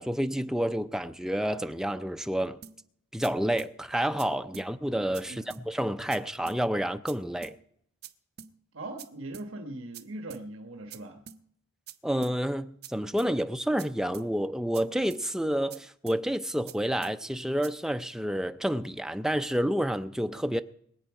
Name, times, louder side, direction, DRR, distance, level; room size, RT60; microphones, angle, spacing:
voice 1, 0.0-2.6 3.1-7.6 12.0-20.6, equal, 5° right, 0.4 m, -29 dB
sound 1, 2.6-2.8 3.2-3.3 3.6-3.7 4.2-4.3 4.5-4.7 5.1-5.2 5.5-5.6 6.1-6.2 6.5-6.6 7.1-7.2 7.4-7.6 8.0-8.1 8.4-8.5 9.0-9.1 9.3-9.5 9.9-10.0 10.3-10.4 10.9-11.0 11.3-11.4 11.9-12.0 12.2-12.4 12.8-12.9 13.2-13.3 13.8-13.9 14.1-14.3 14.7-14.8 15.1-15.2 15.7-15.8 16.1-16.2 16.7-16.8 17.0-17.2 17.6-17.7, right 8 dB, 50° right, 0.7 m, -45 dB
voice 2, 5.2-5.7 8.7-11.2, right 2 dB, 70° right, 1.2 m, -40 dB
22.0 x 8.6 x 4.8 m
head